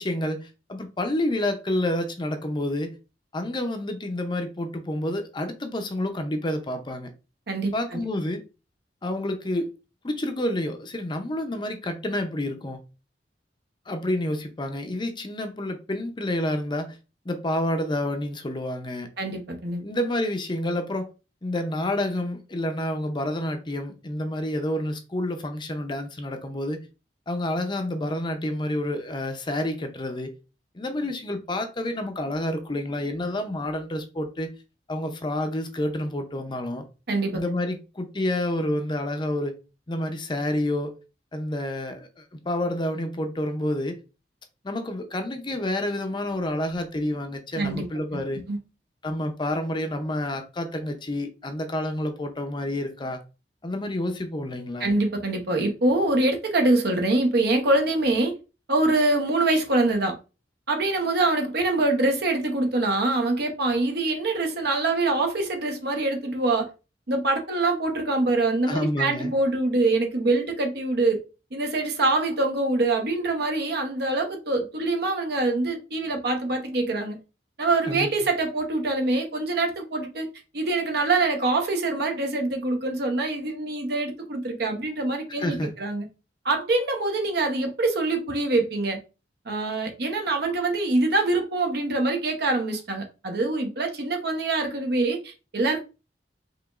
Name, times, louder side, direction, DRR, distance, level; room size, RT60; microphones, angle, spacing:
voice 1, 0.0-2.9 3.3-7.1 7.7-8.4 9.0-9.7 10.0-12.8 13.9-17.0 17.3-19.1 19.8-21.1 21.4-26.8 27.3-30.3 30.7-34.5 34.9-36.8 37.3-39.5 39.9-40.9 41.3-44.0 44.6-48.4 49.0-53.2 53.6-54.9 68.7-69.3 77.9-78.1 85.4-85.7, left 1 dB, 25° left, 0.6 m, -29 dB
voice 2, 7.5-8.0 19.2-19.8 37.1-37.4 47.6-47.9 48.1-48.2 48.5-48.6 54.8-58.3 58.7-60.1 60.7-66.7 67.1-71.2 71.5-77.2 77.6-80.3 80.5-86.1 86.4-89.0 89.5-95.8, right 2 dB, 60° right, 0.9 m, -24 dB
4.7 x 3.0 x 2.4 m
head